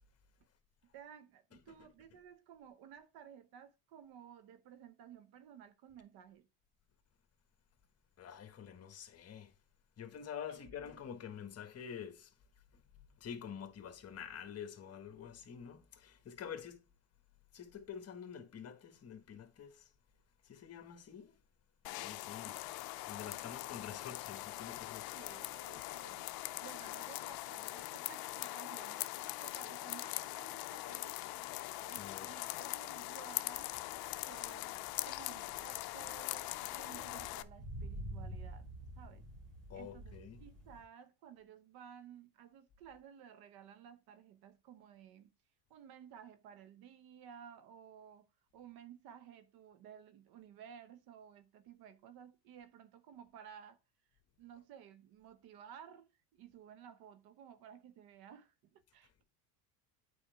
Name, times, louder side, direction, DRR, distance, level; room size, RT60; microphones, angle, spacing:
voice 1, 0.9-6.5 10.5-10.6 22.5-22.6 25.1-33.7 34.3-38.7 39.0-39.2 39.7-40.1 40.4-45.3 45.7-53.8 54.4-59.2, right 8 dB, 55° right, 0.9 m, -56 dB
voice 2, 8.2-9.5 10.0-12.3 12.7-12.8 13.1-16.8 17.5-19.9 20.4-21.4 21.9-22.6 23.1-25.1 32.0-32.3 39.7-40.4 59.0-59.1, left 8 dB, 35° left, 1.5 m, -48 dB
sound 1, 21.8-37.4, left 18 dB, 55° left, 0.6 m, -42 dB
sound 2, 33.5-40.8, right 1 dB, 35° right, 3.1 m, -49 dB
8.6 x 4.6 x 3.5 m
supercardioid pair, 115°, 43 cm